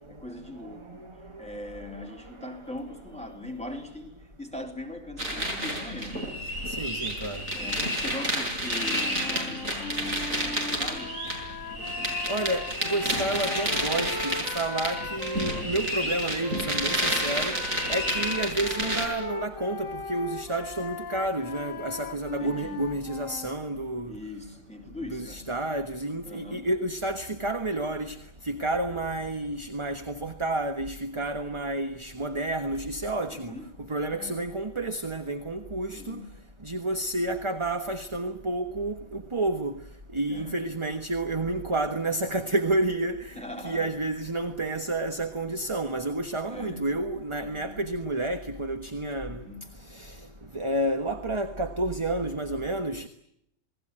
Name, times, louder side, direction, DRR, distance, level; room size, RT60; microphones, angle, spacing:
voice 1, 0.1-1.1 1.4-6.4 7.5-11.2 22.4-22.8 24.1-25.5 26.2-26.7 33.3-33.7 34.1-34.4 35.9-36.3 40.3-40.6 43.4-43.9 46.5-46.9 47.5-47.8 49.3-49.6, left 1 dB, 5° left, 4.0 m, -40 dB
voice 2, 0.6-1.4 1.9-2.6 6.7-7.4 12.3-17.6 17.9-24.1 25.1-28.2 28.4-33.5 33.9-36.2 36.6-39.8 40.1-49.4 49.9-50.3 50.5-53.1, right 2 dB, 20° right, 1.3 m, -30 dB
sound 1, 5.2-19.1, equal, 75° right, 7.3 m, -30 dB
sound 2, 8.7-15.7 16.4-23.6, left 4 dB, 75° left, 1.9 m, -38 dB
28.5 x 20.5 x 8.8 m
omnidirectional pair, 1.4 m